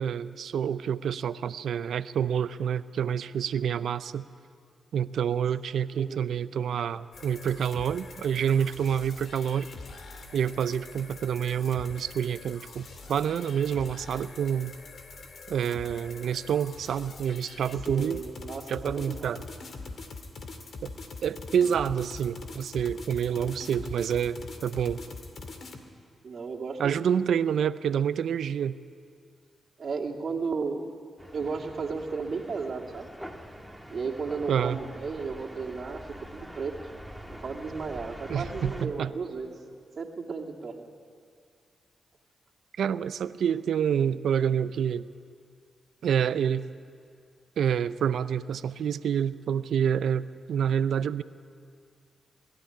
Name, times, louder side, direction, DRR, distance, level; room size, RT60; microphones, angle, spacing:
voice 1, 0.0-4.2 4.9-9.7 10.3-14.7 15.5-18.2 18.7-19.4 20.8-20.9 21.2-25.0 26.8-28.8 34.5-34.8 38.3-39.1 42.8-45.1 46.0-46.6 47.6-51.2, right 8 dB, 75° right, 15 dB, 0.6 m, -28 dB
voice 2, 5.9-6.3 17.8-19.3 26.2-27.0 29.8-30.8 31.3-33.1 33.9-36.0 36.3-36.7 37.4-39.5 40.0-40.8, right 4 dB, 60° right, 0 dB, 2.4 m, -34 dB
sound 1, 7.1-25.8, left 3 dB, 65° left, 2.2 m, -43 dB
sound 2, 31.2-38.9, equal, ahead, 2.0 m, -44 dB
21.0 x 13.0 x 9.9 m, 2.2 s
supercardioid pair, 55°, 0 cm